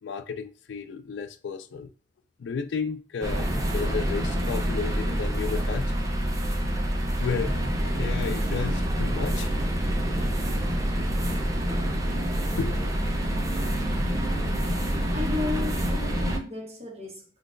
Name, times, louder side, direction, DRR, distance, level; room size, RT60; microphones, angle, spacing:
voice 1, 0.0-1.9 2.4-5.9 7.2-9.5 10.5-10.6 12.4-12.9, left 5 dB, 80° left, 0.4 m, -33 dB
sound 1, 3.2-16.4, equal, 20° right, 0.5 m, -27 dB
voice 2, 15.1-17.2, left 3 dB, 35° right, 1.1 m, -33 dB
3.7 x 2.4 x 2.5 m
head